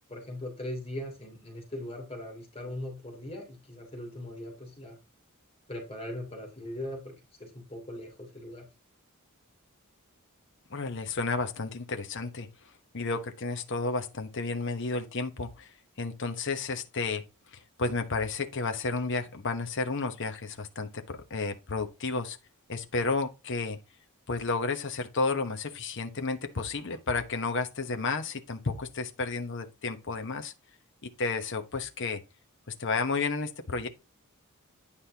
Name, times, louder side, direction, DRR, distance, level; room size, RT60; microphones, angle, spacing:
voice 1, 0.1-5.0 5.7-7.1 7.4-8.7, left 1 dB, 25° left, 2.9 m, -40 dB
voice 2, 10.7-12.5 12.9-15.7 16.0-17.3 17.5-22.4 22.7-23.8 24.3-30.5 31.0-32.2 32.8-33.9, left 3 dB, 55° left, 1.0 m, -32 dB
9.9 x 5.3 x 2.8 m
head